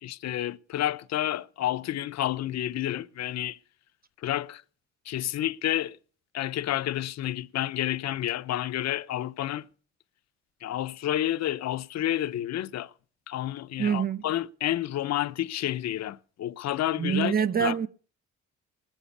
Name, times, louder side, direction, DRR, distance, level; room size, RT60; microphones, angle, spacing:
voice 1, 0.0-3.6 4.2-4.6 5.1-6.0 6.3-9.6 10.6-12.9 13.3-17.3 17.6-17.8, left 13 dB, 60° left, 0.7 m, -30 dB
voice 2, 13.8-14.3 17.0-17.9, right 8 dB, 30° right, 0.8 m, -25 dB
19.0 x 7.3 x 7.0 m
cardioid pair, 90°, 30 cm